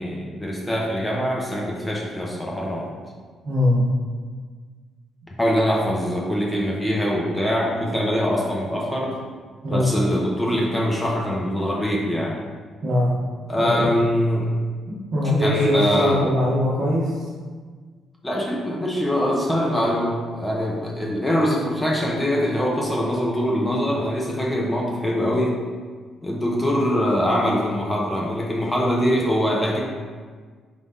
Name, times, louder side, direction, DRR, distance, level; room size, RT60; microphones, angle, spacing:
voice 1, 0.0-2.9 5.4-9.1 9.7-12.4 13.5-14.5 15.4-16.2 18.2-25.6 26.2-29.8, equal, 15° left, -3 dB, 1.0 m, -23 dB
voice 2, 3.4-3.8 9.6-9.9 12.8-13.1 13.6-13.9 14.9-17.2, left 1 dB, 65° right, -8 dB, 0.9 m, -21 dB
3.9 x 3.3 x 3.6 m, 1.5 s
hypercardioid pair, 50°, 0 cm